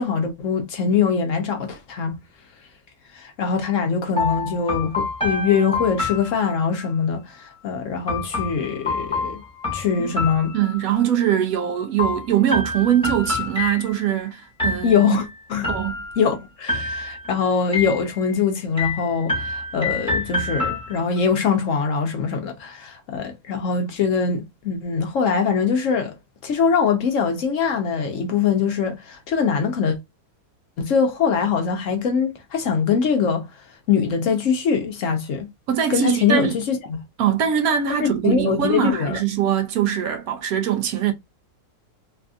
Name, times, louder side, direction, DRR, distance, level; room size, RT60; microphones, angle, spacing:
voice 1, 0.0-2.1 3.1-9.4 9.7-10.5 14.8-15.7 16.2-26.2 26.4-30.0 30.8-35.5 35.9-37.0 38.0-39.2, left 6 dB, 65° left, 0.9 m, -22 dB
sound 1, 4.2-6.9 8.1-11.1 12.0-14.2 14.6-15.2 15.6-16.3 16.7-17.3 17.7-18.4 18.8-21.2, left 3 dB, 5° left, 1.1 m, -27 dB
voice 2, 10.5-15.2 15.7-16.0 35.7-36.6 37.2-41.1, right 9 dB, 70° right, 1.0 m, -22 dB
3.4 x 2.5 x 2.3 m
omnidirectional pair, 1.6 m